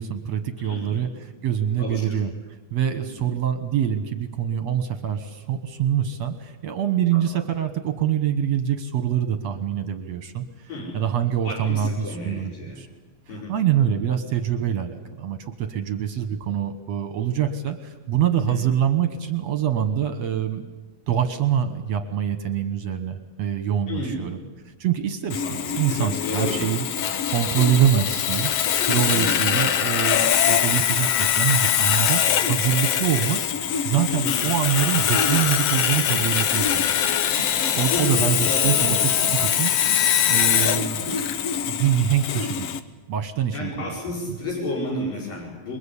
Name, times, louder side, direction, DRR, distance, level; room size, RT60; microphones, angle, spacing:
voice 1, 0.0-2.3 2.7-10.7 10.9-12.9 13.5-20.7 21.1-24.4 24.7-25.4 25.7-26.8 27.3-28.5 28.9-33.4 33.8-37.1 37.8-39.7 40.3-41.2 41.7-42.8 43.1-43.9, right 9 dB, 60° right, 9 dB, 2.0 m, -25 dB
voice 2, 0.6-1.1 1.8-2.2 3.1-3.3 7.1-7.4 10.7-11.0 11.4-12.9 13.3-13.5 18.3-18.6 23.9-24.4 25.4-26.7 27.6-27.8 28.9-29.3 34.1-34.3 37.9-39.5 40.5-40.7 43.5-45.8, left 1 dB, 65° left, -3 dB, 6.8 m, -32 dB
Sawing, 25.3-42.8, left 9 dB, 90° left, 1.4 m, -23 dB
sound 1, 34.9-41.3, right 2 dB, 35° left, 5.1 m, -41 dB
28.0 x 22.5 x 8.4 m, 1.1 s
omnidirectional pair, 4.3 m